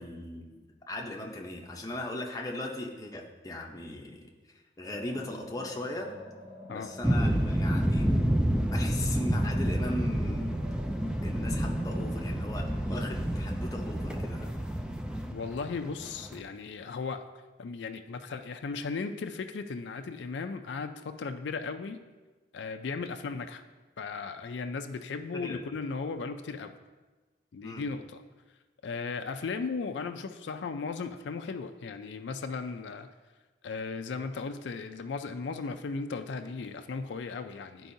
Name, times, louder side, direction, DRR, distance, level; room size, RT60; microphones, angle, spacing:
voice 1, 0.0-6.1 6.7-8.1 8.7-10.5 11.2-14.7 25.3-25.6 27.6-27.9, left 1 dB, 20° left, 0 dB, 0.7 m, -38 dB
sound 1, 4.8-15.0, left 1 dB, 35° right, 1.6 m, -50 dB
sound 2, 7.0-16.4, equal, 5° right, 0.3 m, -29 dB
voice 2, 15.3-17.2 17.6-22.0 22.5-23.6 24.0-26.7 27.5-28.2 28.8-33.1 33.6-37.9, left 4 dB, 85° left, 7 dB, 0.4 m, -36 dB
11.5 x 4.6 x 2.7 m, 1.2 s
head